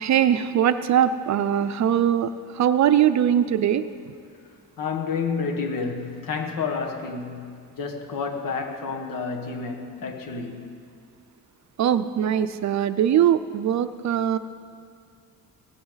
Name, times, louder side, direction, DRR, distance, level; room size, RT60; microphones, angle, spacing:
voice 1, 0.0-4.1 11.8-14.4, right 10 dB, 50° right, 11 dB, 0.5 m, -21 dB
voice 2, 4.8-10.7, left 5 dB, 65° left, 4 dB, 1.7 m, -30 dB
16.5 x 15.5 x 4.0 m, 2.3 s
cardioid pair, 145°, 36 cm